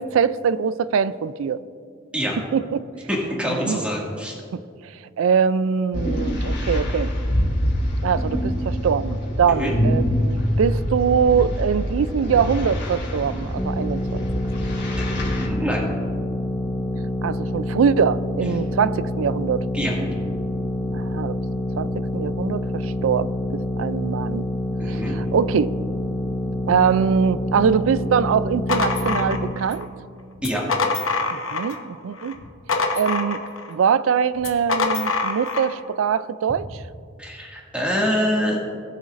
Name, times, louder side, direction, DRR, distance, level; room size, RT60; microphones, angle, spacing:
voice 1, 0.0-1.6 2.5-2.8 3.4-3.8 4.5-4.6 5.2-7.1 8.0-14.2 17.2-19.6 20.9-21.4 21.8-24.5 24.9-25.7 26.7-29.9 31.3-32.4 33.0-33.4 33.7-36.8, right 6 dB, 85° right, 16 dB, 0.4 m, -23 dB
voice 2, 3.1-4.4 9.6-9.7 15.0-15.9 19.7-19.9 24.8-25.1 30.4-30.7 37.2-38.6, equal, 5° right, -3 dB, 2.0 m, -25 dB
sound 1, 5.9-15.5, equal, 55° left, 2.8 m, -25 dB
sound 2, 13.6-29.5, left 1 dB, 20° left, 0.6 m, -27 dB
sound 3, 28.7-29.8 30.4-31.8 32.2-33.7 34.4-35.7, left 3 dB, 80° left, 1.0 m, -25 dB
20.0 x 7.2 x 2.5 m, 2.3 s
head